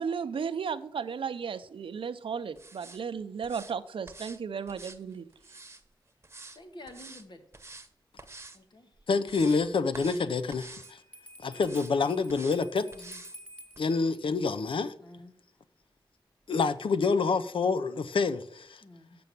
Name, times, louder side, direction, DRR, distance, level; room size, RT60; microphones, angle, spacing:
voice 1, 0.0-5.2, right 6 dB, 85° right, 0.6 m, -34 dB
sound 1, 2.6-3.0 3.4-3.7 4.1-4.4 4.7-5.8 6.2-6.6 6.9-7.2 7.5-7.9 8.2-8.6 9.0-9.6 9.9-10.2 10.5-10.9 11.6-11.9 12.3-12.6 12.9-13.4 13.7-13.8, right 3 dB, 30° right, 1.1 m, -47 dB
voice 2, 6.5-7.4 8.5-8.9 12.9-13.2 15.0-15.3 18.8-19.2, left 1 dB, 60° left, 1.5 m, -49 dB
voice 3, 9.1-11.0 11.4-12.9 13.8-14.9 16.5-18.8, left 4 dB, 85° left, 0.7 m, -27 dB
Bell, 10.8-13.9, equal, 15° left, 1.9 m, -50 dB
6.9 x 6.9 x 7.7 m
wide cardioid pair, 75°, 9 cm